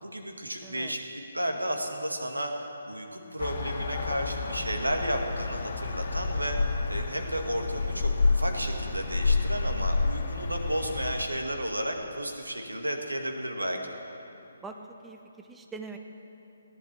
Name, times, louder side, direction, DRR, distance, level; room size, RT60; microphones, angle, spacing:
voice 1, 0.0-1.0 1.3-2.5 2.9-6.6 6.9-13.8, right 1 dB, 85° right, 3 dB, 1.9 m, -33 dB
voice 2, 0.6-1.0 14.6-16.0, right 4 dB, 5° right, 4 dB, 0.8 m, -43 dB
sound 1, 3.4-11.3, left 3 dB, 50° left, 1.7 m, -29 dB
16.5 x 10.5 x 7.5 m, 3.0 s
figure-of-eight pair, 140°, 0 cm